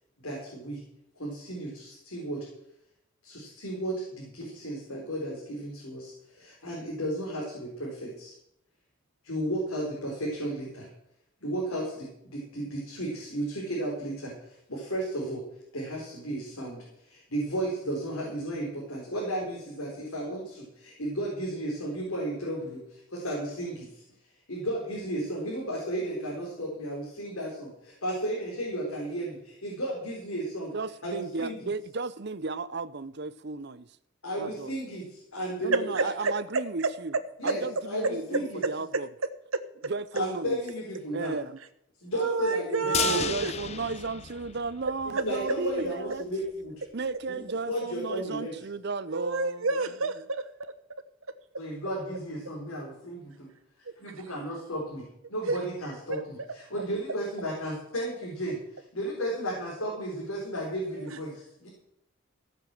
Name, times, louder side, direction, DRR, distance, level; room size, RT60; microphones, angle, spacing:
voice 1, 0.2-0.8 1.1-2.5 3.2-8.3 9.2-10.9 11.4-15.4 15.7-24.0 24.5-30.7 31.0-31.6 34.2-36.1 37.4-38.6 40.1-41.3 42.0-43.3 45.1-46.8 47.3-47.4 47.7-48.5 51.6-53.5 54.0-61.7, right 1 dB, 75° left, 4.3 m, -34 dB
voice 2, 30.7-33.9 34.4-34.7 35.6-37.1 37.4-39.1 39.8-40.6 41.1-41.6 42.8-46.2 46.9-49.8, right 3 dB, 50° right, 0.7 m, -34 dB
voice 3, 42.1-43.5 49.1-50.7 55.4-55.6 56.1-56.2 61.1-61.2, right 4 dB, 70° right, 1.2 m, -29 dB
sound 1, 42.9-45.1 45.4-45.5 45.9-46.0, left 7 dB, 30° left, 0.6 m, -32 dB
16.0 x 6.9 x 7.7 m
head